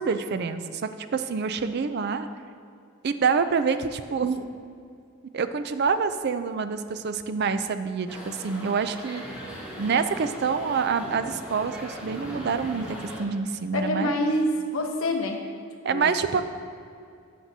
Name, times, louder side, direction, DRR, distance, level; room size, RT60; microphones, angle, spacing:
voice 1, 0.0-2.3 3.0-4.4 5.3-9.2 9.8-14.2 15.8-16.4, right 5 dB, 45° right, 10 dB, 0.4 m, -27 dB
sound 1, 8.1-13.2, equal, 5° right, 1.3 m, -39 dB
voice 2, 13.7-15.4 15.9-16.1, left 1 dB, 70° left, 1 dB, 1.0 m, -26 dB
12.0 x 7.5 x 2.8 m, 2.4 s
head